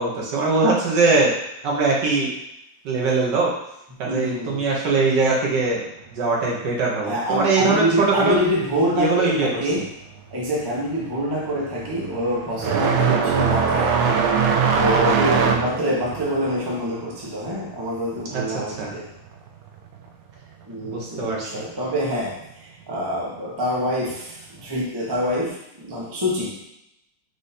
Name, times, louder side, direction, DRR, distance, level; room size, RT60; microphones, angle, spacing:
voice 1, 0.0-1.3 1.6-2.3 2.8-3.5 4.0-5.8 6.1-8.4 8.9-9.6 15.0-15.4 18.3-18.4 18.8-18.9 20.8-21.6, right 3 dB, 60° right, -3 dB, 1.5 m, -21 dB
voice 2, 4.1-4.6 7.0-9.9 10.3-14.0 14.7-19.1 20.6-26.7, equal, 30° right, -5 dB, 0.4 m, -26 dB
sound 1, 10.0-10.4 10.7-19.0 19.3-20.3 21.3-21.4 22.2-22.3 24.1-24.2, right 6 dB, 75° right, 1.3 m, -22 dB
4.9 x 2.6 x 4.1 m, 0.82 s
omnidirectional pair, 2.3 m